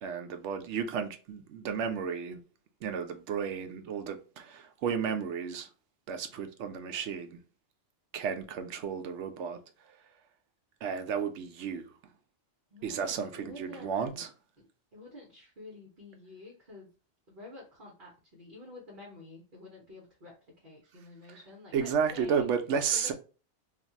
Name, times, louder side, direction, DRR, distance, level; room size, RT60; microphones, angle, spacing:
voice 1, 0.0-2.4 2.8-5.7 6.1-7.4 8.1-9.6 10.8-11.9 12.8-14.3 21.3-21.4 21.7-23.1, right 6 dB, 75° right, 0.9 m, -33 dB
voice 2, 12.7-14.2 14.6-14.7 14.9-16.9 17.3-22.5 22.9-23.1, left 2 dB, 45° right, 1.0 m, -49 dB
2.5 x 2.3 x 4.0 m
omnidirectional pair, 1.2 m